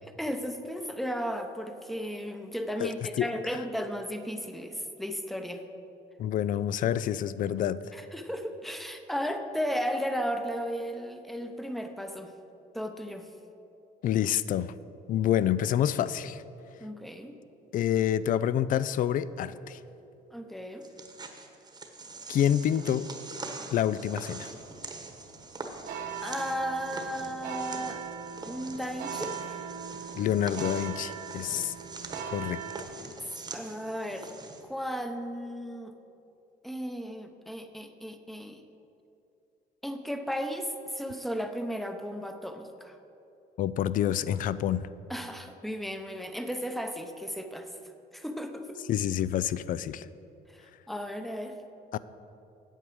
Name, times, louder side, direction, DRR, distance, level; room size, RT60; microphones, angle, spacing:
voice 1, 0.0-5.6 7.9-12.3 12.7-13.3 16.8-17.3 20.3-20.9 26.2-28.0 28.4-29.6 33.2-34.3 34.6-35.9 36.6-38.6 39.8-43.0 45.1-47.7 48.1-48.8 50.5-51.6, equal, ahead, 7 dB, 0.7 m, -35 dB
voice 2, 2.8-3.3 6.2-7.8 14.0-14.7 15.1-16.4 17.7-19.8 22.3-23.1 23.7-24.5 30.2-31.7 32.3-32.6 43.6-44.9 48.9-50.1 51.9-52.0, left 10 dB, 55° left, 17 dB, 0.4 m, -27 dB
sound 1, 20.8-34.6, right 3 dB, 25° right, 1.1 m, -43 dB
sound 2, 23.8-32.8, right 7 dB, 75° right, 1.3 m, -40 dB
9.1 x 8.1 x 6.2 m, 2.8 s
cardioid pair, 110°, 17 cm